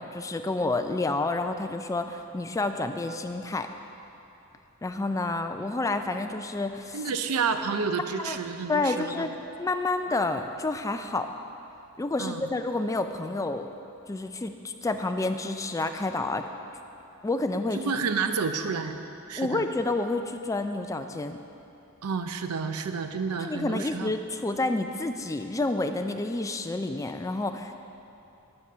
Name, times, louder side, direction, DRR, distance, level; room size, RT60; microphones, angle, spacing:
voice 1, 0.0-3.7 4.8-7.0 8.2-8.4 8.7-9.3 9.6-11.3 12.0-13.7 14.1-16.4 17.2-17.9 19.4-21.4 23.4-27.8, left 2 dB, 15° left, 7 dB, 0.3 m, -29 dB
voice 2, 6.9-9.3 12.2-12.5 17.7-19.0 19.3-19.6 22.0-24.1, right 5 dB, 90° right, 8 dB, 0.6 m, -30 dB
9.6 x 7.7 x 5.5 m, 2.8 s
head